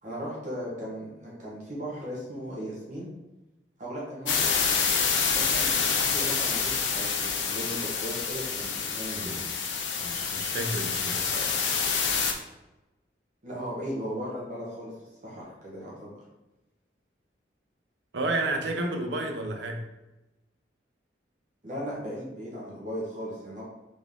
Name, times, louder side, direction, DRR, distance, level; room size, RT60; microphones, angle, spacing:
voice 1, 0.0-3.1 3.8-4.5 5.3-9.4 13.4-14.9 15.2-16.1 21.6-23.6, equal, 40° right, -6 dB, 1.1 m, -37 dB
sound 1, 4.3-12.3, left 6 dB, 85° left, 0.6 m, -27 dB
voice 2, 9.1-9.5 10.0-11.6 18.1-19.8, right 2 dB, 75° right, 3 dB, 0.6 m, -31 dB
3.9 x 3.5 x 3.7 m, 1.0 s
head